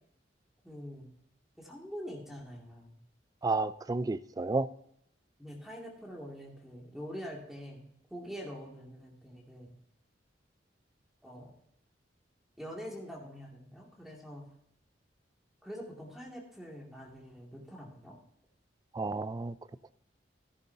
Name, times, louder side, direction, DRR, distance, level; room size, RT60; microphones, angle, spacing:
voice 1, 0.6-1.1 1.6-3.0 5.4-7.8 8.1-9.7 11.2-11.5 12.6-14.4 15.6-18.1, equal, ahead, 2.3 m, -45 dB
voice 2, 3.4-4.7 18.9-19.5, right 3 dB, 20° right, 0.3 m, -31 dB
15.0 x 10.5 x 2.8 m
head